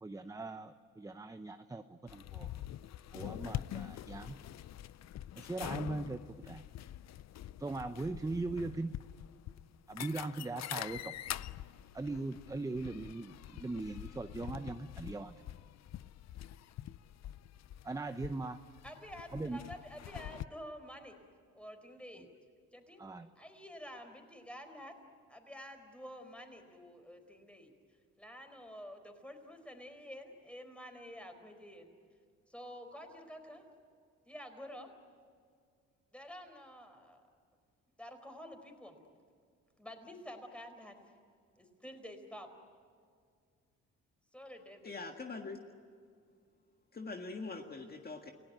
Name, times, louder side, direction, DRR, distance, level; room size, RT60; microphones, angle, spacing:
voice 1, 0.0-2.6 3.1-4.4 5.4-6.6 7.6-8.9 9.9-11.1 11.9-15.3 17.8-18.6 19.3-19.6 23.0-23.3, right 2 dB, 10° right, 9 dB, 0.8 m, -40 dB
sound 1, 2.1-20.4, left 12 dB, 60° left, 0.6 m, -45 dB
voice 2, 18.8-21.2 21.5-22.3 22.7-23.0 23.4-25.0 25.3-27.7 28.2-31.9 32.5-33.7 34.3-34.9 36.1-37.2 38.0-39.0 39.8-41.0 41.6-42.5 44.3-44.9, equal, 5° left, 6 dB, 4.5 m, -49 dB
voice 3, 44.8-45.6 46.9-48.3, left 3 dB, 30° left, 3 dB, 1.9 m, -43 dB
29.0 x 17.0 x 9.3 m, 2.1 s
cardioid pair, 90°, 30 cm